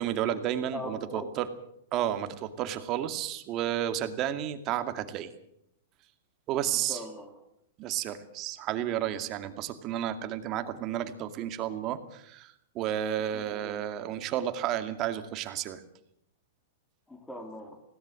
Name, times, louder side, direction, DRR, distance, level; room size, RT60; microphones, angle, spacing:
voice 1, 0.0-1.5 1.9-5.3 6.5-7.0 7.8-15.8, right 11 dB, 35° right, 8 dB, 2.2 m, -32 dB
voice 2, 0.7-1.3 6.7-7.3 13.3-13.8 17.1-17.8, left 1 dB, 5° left, 3 dB, 3.8 m, -41 dB
21.0 x 17.5 x 7.7 m, 0.74 s
hypercardioid pair, 130°, 0 cm